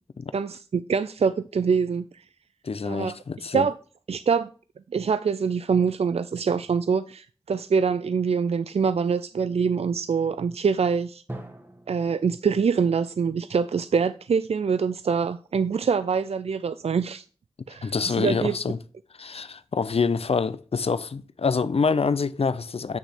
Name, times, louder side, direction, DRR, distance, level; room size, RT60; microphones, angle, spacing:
voice 1, 0.3-2.1 2.9-3.2 3.5-3.7 4.1-4.5 4.9-11.2 11.9-17.2 17.7-18.6, right 6 dB, 70° right, 0.4 m, -24 dB
voice 2, 2.6-3.7 17.8-18.8 19.2-23.0, left 5 dB, 65° left, 0.5 m, -26 dB
Drum, 11.3-15.0, right 1 dB, 20° right, 1.1 m, -45 dB
8.5 x 3.4 x 5.7 m
wide cardioid pair, 50°, 11 cm